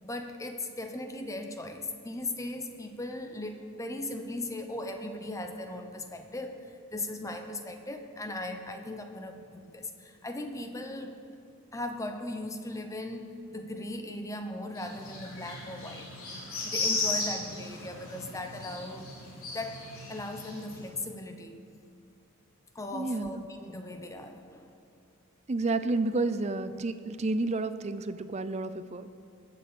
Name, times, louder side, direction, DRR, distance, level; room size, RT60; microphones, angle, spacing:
voice 1, 0.0-11.1 11.7-16.1 16.6-19.2 19.5-21.6 22.7-24.7, left 2 dB, 15° left, 6 dB, 0.8 m, -38 dB
sound 1, 14.8-20.8, left 3 dB, 70° left, 3.8 m, -35 dB
voice 2, 22.9-23.3 25.5-29.1, right 2 dB, 30° right, 12 dB, 0.5 m, -30 dB
19.5 x 7.0 x 6.8 m, 2.5 s
head